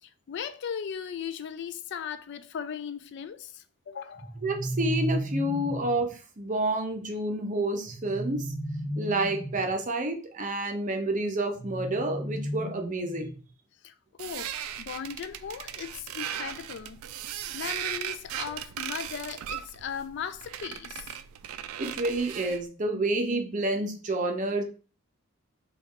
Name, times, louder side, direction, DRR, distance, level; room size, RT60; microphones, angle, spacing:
voice 1, 0.0-4.4 13.8-17.0 17.5-21.1, left 7 dB, 55° left, 0.3 m, -38 dB
sound 1, 4.2-6.0 7.8-9.7 11.6-13.5, right 1 dB, 35° left, 1.0 m, -34 dB
voice 2, 4.4-8.5 9.0-13.3 21.8-24.6, right 2 dB, 35° right, 0.6 m, -29 dB
sound 2, 14.2-22.7, right 10 dB, 75° right, 0.3 m, -37 dB
4.1 x 2.3 x 3.6 m
head